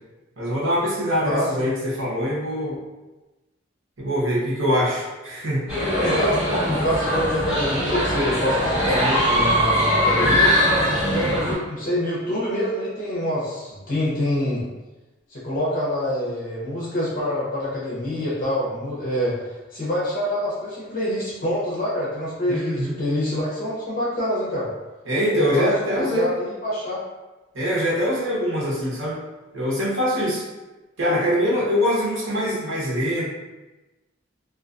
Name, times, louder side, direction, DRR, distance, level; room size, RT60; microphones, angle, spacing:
voice 1, 0.4-2.8 4.0-5.6 22.5-23.0 25.1-26.3 27.5-29.2 29.5-30.4 31.0-33.3, equal, 80° right, -6 dB, 0.9 m, -23 dB
sound 1, 5.7-11.5, equal, 20° right, 1.4 m, -21 dB
voice 2, 6.0-10.5 11.1-14.7 15.3-24.7 25.3-25.7 25.9-27.0, equal, 45° left, -7 dB, 0.7 m, -26 dB
2.4 x 2.3 x 2.4 m, 1.1 s
head